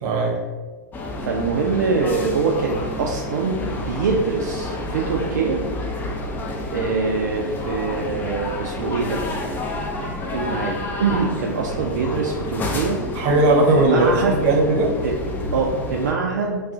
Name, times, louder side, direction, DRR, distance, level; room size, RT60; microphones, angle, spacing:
voice 1, 0.0-0.4 13.1-14.9, right 2 dB, 40° right, -1 dB, 0.7 m, -18 dB
sound 1, 0.9-16.1, left 1 dB, 15° left, 0.4 m, -29 dB
voice 2, 1.2-5.6 6.7-9.2 10.3-13.0 13.7-14.4 15.0-15.1 15.5-16.6, right 4 dB, 65° right, -1 dB, 0.4 m, -24 dB
2.3 x 2.3 x 3.7 m, 1.4 s
figure-of-eight pair, 100°, 11 cm